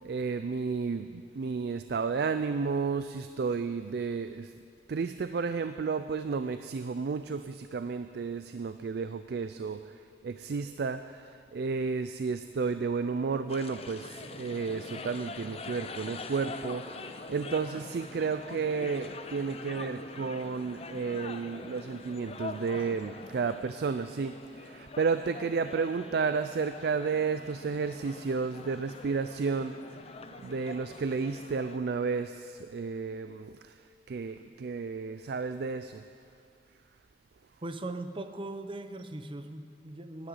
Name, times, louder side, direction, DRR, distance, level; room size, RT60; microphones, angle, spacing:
voice 1, 0.0-4.5 4.9-9.8 10.2-29.8 30.4-33.7 34.1-36.0, right 5 dB, 65° right, 10 dB, 0.4 m, -32 dB
sound 1, 13.5-31.8, left 3 dB, 35° left, 0.6 m, -44 dB
voice 2, 37.6-40.3, right 2 dB, 30° right, 9 dB, 0.7 m, -39 dB
11.0 x 10.0 x 8.9 m, 2.3 s
head